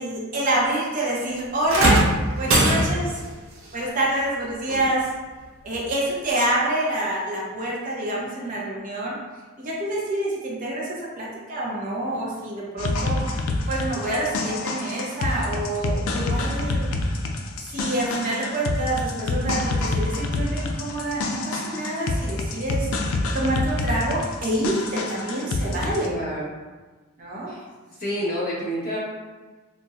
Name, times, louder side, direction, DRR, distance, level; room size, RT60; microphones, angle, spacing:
voice 1, 0.0-2.0 2.4-3.2 3.7-5.1 5.6-9.2 9.6-13.2 13.7-16.9 17.6-22.9 23.3-26.1 27.2-27.5, right 1 dB, 40° right, -5 dB, 0.7 m, -27 dB
sound 1, 1.7-3.2 4.7-4.8 5.7-5.8, right 1 dB, 85° right, 0.6 m, -20 dB
sound 2, 12.8-26.1, left 2 dB, 85° left, 0.4 m, -27 dB
voice 2, 26.0-26.5 27.5-27.6 28.0-29.0, equal, 45° left, -7 dB, 1.1 m, -28 dB
4.0 x 2.1 x 2.4 m, 1.3 s
head